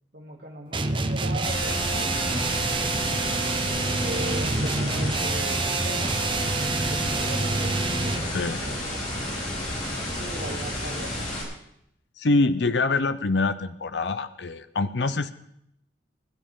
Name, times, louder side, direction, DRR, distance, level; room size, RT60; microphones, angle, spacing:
voice 1, 0.1-3.4 4.0-9.1 9.8-11.2, right 1 dB, 60° right, 0 dB, 3.1 m, -39 dB
sound 1, 0.7-8.3, right 3 dB, 30° right, 0.8 m, -27 dB
sound 2, 1.4-11.4, left 1 dB, 45° left, 4.2 m, -31 dB
voice 2, 8.3-8.6 12.2-15.3, left 3 dB, 75° left, 12 dB, 0.7 m, -25 dB
21.5 x 11.0 x 3.8 m, 0.75 s
head